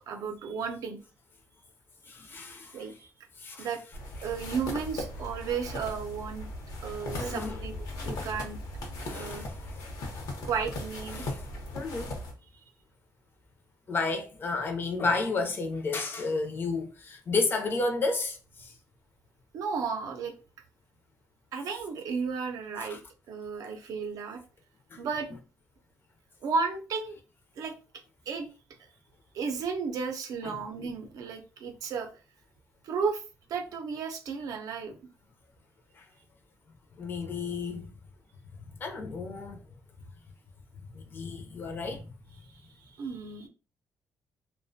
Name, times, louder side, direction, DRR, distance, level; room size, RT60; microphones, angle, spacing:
voice 1, 0.1-1.0 2.7-3.1 3.6-3.8 4.2-6.5 6.8-8.6 9.1-9.5 10.4-11.2 19.5-20.3 21.5-23.0 23.3-24.4 25.0-25.3 26.4-27.2 27.6-27.8 28.3-28.5 29.3-32.1 32.8-33.2 33.5-35.0 42.6-42.7 43.0-43.5, right 5 dB, 70° right, 0.5 m, -33 dB
voice 2, 2.1-2.9 3.4-3.7 7.1-7.6 9.0-9.8 11.1-11.4 11.7-12.1 13.9-18.7 22.8-23.0 24.9-25.0 30.4-30.9 36.0-36.1 37.0-37.9 38.6-39.6 40.9-42.1, left 3 dB, 35° left, 0.5 m, -32 dB
sound 1, 3.9-12.3, left 1 dB, 75° left, 0.7 m, -38 dB
2.4 x 2.1 x 2.5 m
cardioid pair, 155°, 6 cm